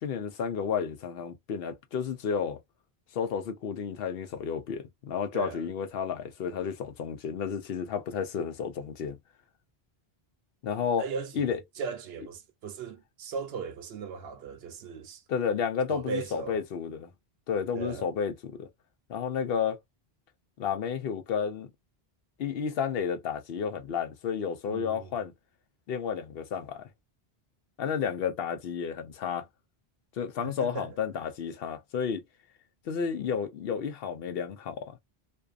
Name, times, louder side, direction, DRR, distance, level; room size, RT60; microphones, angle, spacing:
voice 1, 0.0-2.6 3.1-9.2 10.6-11.0 11.3-11.6 15.3-17.1 17.5-18.7 19.1-19.8 20.6-21.7 22.4-25.3 25.9-26.9 27.8-29.4 30.2-32.2 32.9-35.0, left 7 dB, 70° left, 0.8 m, -31 dB
voice 2, 11.0-15.2 15.9-16.6 17.7-18.1 24.7-25.1 30.4-30.9, right 5 dB, 80° right, 0.9 m, -38 dB
2.5 x 2.2 x 2.4 m
omnidirectional pair, 1.0 m